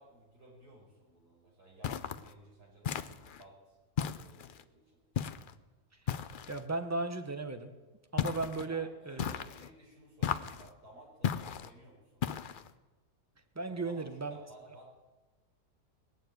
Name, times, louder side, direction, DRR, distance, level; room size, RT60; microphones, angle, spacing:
voice 1, 0.0-3.8 4.0-5.0 8.6-12.2 13.7-14.0 14.3-14.9, right 1 dB, 85° right, -3 dB, 5.6 m, -56 dB
sound 1, 1.8-2.3 2.8-3.4 4.0-4.6 5.1-5.5 6.1-6.6 8.2-8.7 9.2-9.7 10.2-10.7 11.2-11.7 12.2-12.7, left 8 dB, 75° left, 0.4 m, -35 dB
voice 2, 6.5-7.7 8.1-9.3 13.5-14.4, right 3 dB, 10° right, 7 dB, 0.9 m, -36 dB
20.0 x 6.8 x 9.3 m, 1.2 s
omnidirectional pair, 1.6 m